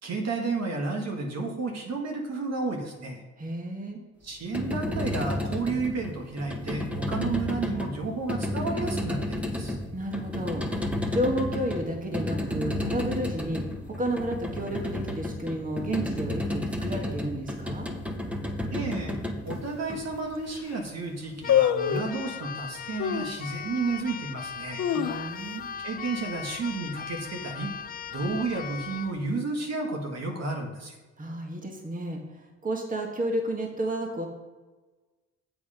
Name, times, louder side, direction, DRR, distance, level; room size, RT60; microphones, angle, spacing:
voice 1, 0.0-3.2 4.2-9.8 18.7-19.2 19.4-24.8 25.8-27.7 28.1-30.9, right 3 dB, 60° right, 2 dB, 2.0 m, -32 dB
voice 2, 3.4-4.0 9.9-10.6 11.1-17.9 25.0-25.7 31.2-34.3, right 1 dB, 25° right, 2 dB, 1.8 m, -31 dB
sound 1, 4.3-20.5, left 1 dB, 5° right, 1.4 m, -32 dB
sound 2, 19.5-19.6 20.2-20.3 20.5-20.9 21.5-22.2 23.0-23.4 23.9-24.0 24.5-25.7 26.0-26.1 26.4-26.8 27.2-27.5 28.2-28.9 29.2-29.3, left 9 dB, 65° left, 0.9 m, -26 dB
Keyboard (musical), 21.4-29.2, left 7 dB, 30° left, 0.4 m, -38 dB
8.0 x 6.8 x 5.2 m, 1.3 s
cardioid pair, 90°, 30 cm